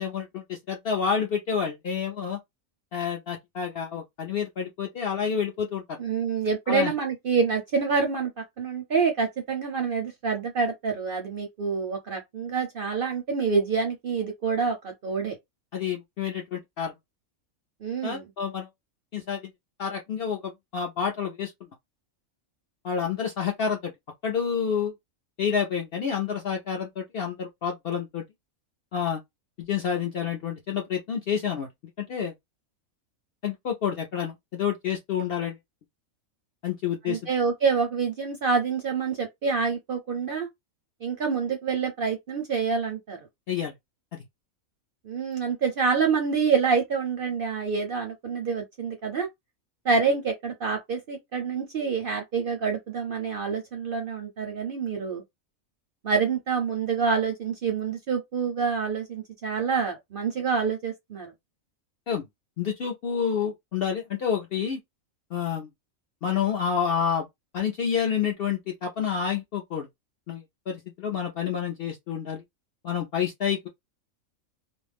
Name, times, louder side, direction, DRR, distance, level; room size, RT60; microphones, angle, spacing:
voice 1, 0.0-2.4 2.9-6.0 6.7-6.9 15.7-16.9 18.0-18.7 19.1-19.5 19.8-21.5 22.8-23.9 24.2-24.9 25.4-28.2 28.9-29.2 29.6-31.7 32.0-32.3 33.4-35.6 36.6-37.2 43.5-43.7 44.1-44.2 62.1-62.2 62.6-64.8 65.3-65.7 66.2-67.3 67.5-69.9 70.3-72.4 72.8-73.7, left 7 dB, 65° left, 0.6 m, -29 dB
voice 2, 6.0-8.3 8.6-15.4 17.8-18.2 37.0-40.5 41.0-43.2 45.1-49.3 49.8-55.2 56.0-61.3, right 5 dB, 55° right, 0.6 m, -27 dB
2.5 x 2.0 x 3.3 m
omnidirectional pair, 1.5 m